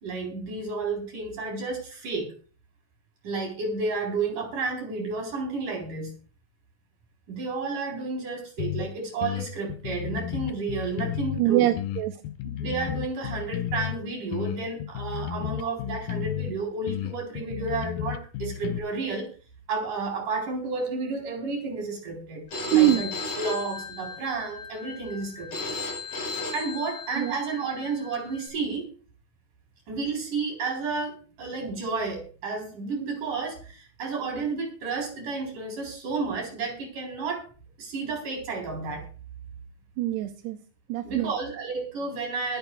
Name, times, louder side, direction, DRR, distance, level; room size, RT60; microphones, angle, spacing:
voice 1, 0.0-2.3 3.2-6.1 7.3-11.7 12.6-19.3 19.7-23.1 23.4-25.7 26.5-28.9 29.9-37.5 37.8-39.1 41.0-42.6, right 4 dB, 50° right, 2 dB, 5.4 m, -31 dB
sound 1, 8.6-8.9 9.2-11.4 11.8-14.0 14.3-16.5 16.9-18.8, left 12 dB, 85° left, 1.9 m, -32 dB
voice 2, 11.4-12.2 22.7-23.0 27.2-27.4 40.0-40.6 40.9-41.3, right 14 dB, 80° right, 5 dB, 2.8 m, -23 dB
Telephone, 22.5-28.5, left 3 dB, 40° left, 6.3 m, -36 dB
24.0 x 10.0 x 2.4 m, 0.37 s
omnidirectional pair, 4.9 m